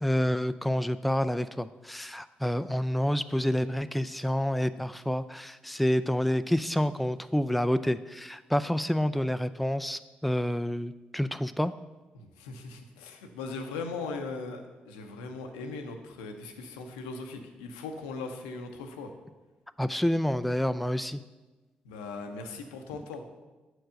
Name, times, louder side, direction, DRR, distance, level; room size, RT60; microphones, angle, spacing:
voice 1, 0.0-11.7 19.8-21.2, equal, ahead, 12 dB, 0.3 m, -28 dB
voice 2, 12.1-19.1 21.8-23.2, left 4 dB, 85° left, 5 dB, 0.6 m, -39 dB
6.5 x 4.5 x 6.3 m, 1.2 s
hypercardioid pair, 40°, 4 cm